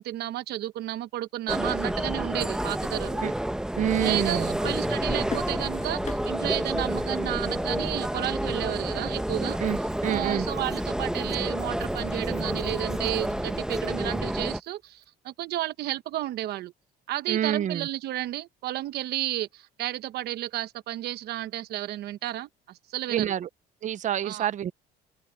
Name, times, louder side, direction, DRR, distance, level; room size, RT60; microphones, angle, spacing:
voice 1, 0.0-3.2 4.0-9.6 10.0-16.7 17.1-23.3 24.2-24.5, right 14 dB, 70° right, 1.0 m, -32 dB
sound 1, 1.5-14.6, right 1 dB, 5° right, 1.0 m, -29 dB
voice 2, 3.8-4.5 9.6-10.5 17.3-17.9 23.1-23.5 23.8-24.7, right 10 dB, 45° right, 0.7 m, -27 dB
sound 2, 4.6-13.4, left 7 dB, 45° left, 6.8 m, -43 dB
sound 3, 9.5-15.1, right 3 dB, 20° right, 6.5 m, -59 dB
open air
cardioid pair, 110°, 17 cm